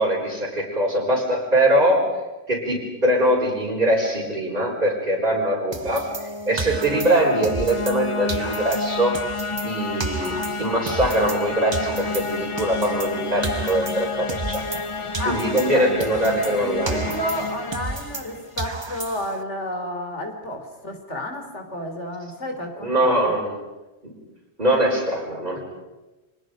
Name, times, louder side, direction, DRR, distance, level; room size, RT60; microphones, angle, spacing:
voice 1, 0.0-2.2 2.5-9.2 9.6-14.6 15.3-17.1 22.8-23.5 24.0-24.1 24.6-25.6, right 1 dB, 40° right, -6 dB, 4.7 m, -22 dB
sound 1, 5.6-18.7, left 3 dB, 30° left, 0.9 m, -31 dB
sound 2, 5.7-8.0 8.3-11.4 11.7-14.9 15.1-18.3 18.6-19.4, right 3 dB, 25° right, 1.0 m, -33 dB
voice 2, 15.2-15.8 16.4-23.2, left 1 dB, 85° left, 4 dB, 3.8 m, -31 dB
29.5 x 25.0 x 5.2 m, 1.1 s
omnidirectional pair, 1.2 m